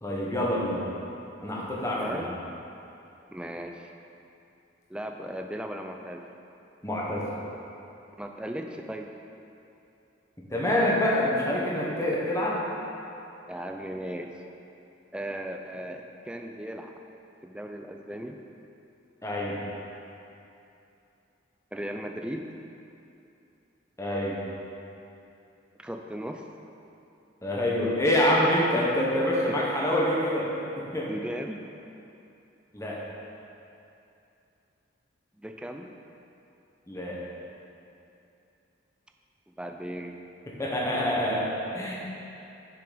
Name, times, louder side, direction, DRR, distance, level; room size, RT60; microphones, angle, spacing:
voice 1, 0.0-0.9 1.4-2.3 6.8-7.3 10.5-12.6 19.2-19.6 24.0-24.4 27.4-30.5 30.8-31.1 32.7-33.0 36.9-37.2 40.6-41.9, left 1 dB, 15° left, -4 dB, 1.1 m, -26 dB
voice 2, 3.3-3.9 4.9-6.3 8.2-9.1 11.7-11.9 13.5-14.3 15.1-16.9 17.4-18.4 21.7-22.5 25.8-26.4 28.8-28.9 29.5-29.6 31.0-31.7 35.4-35.9 39.5-40.2, equal, 5° right, 3 dB, 0.3 m, -37 dB
7.0 x 5.9 x 5.1 m, 2.8 s
head